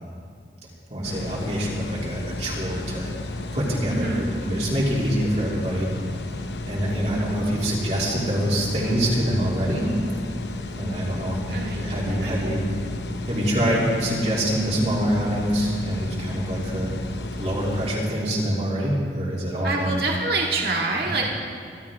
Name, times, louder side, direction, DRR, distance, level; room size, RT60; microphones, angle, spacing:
voice 1, 0.9-3.1 3.5-5.9 6.7-9.9 10.8-12.7 13.3-16.9 17.4-20.0, equal, 40° right, -6 dB, 3.0 m, -25 dB
sound 1, 1.0-18.0, left 2 dB, 80° left, 0.9 m, -33 dB
voice 2, 3.9-4.3 11.5-12.6 19.6-21.2, right 3 dB, 60° right, -2 dB, 2.0 m, -27 dB
25.0 x 12.0 x 3.7 m, 2.2 s
head